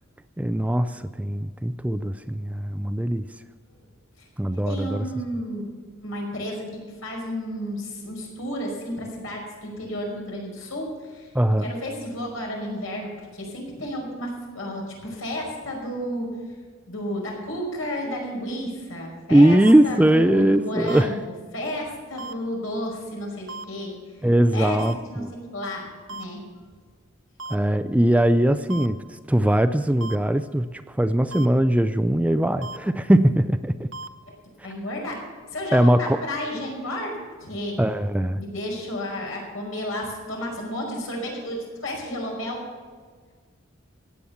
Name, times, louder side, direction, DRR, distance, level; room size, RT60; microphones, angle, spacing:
voice 1, 0.4-3.3 4.4-5.1 11.3-11.7 19.3-21.2 24.2-25.3 27.5-33.9 35.7-36.2 37.8-38.4, right 1 dB, 5° right, 11 dB, 0.4 m, -20 dB
voice 2, 4.5-5.6 6.0-11.3 11.6-16.3 16.9-21.2 21.5-24.2 24.5-24.8 25.1-26.4 34.2-34.4 34.6-35.2 35.5-37.8 38.4-42.6, equal, 80° left, -1 dB, 5.4 m, -32 dB
sound 1, 19.6-19.7 20.9-21.0 22.2-22.3 23.5-23.6 24.8-24.9 26.1-26.2 27.4-27.6 28.7-28.9 30.0-30.2 31.3-31.5 32.6-32.8 33.9-34.1, right 3 dB, 70° right, 1.0 m, -35 dB
15.5 x 9.3 x 7.2 m, 1.6 s
head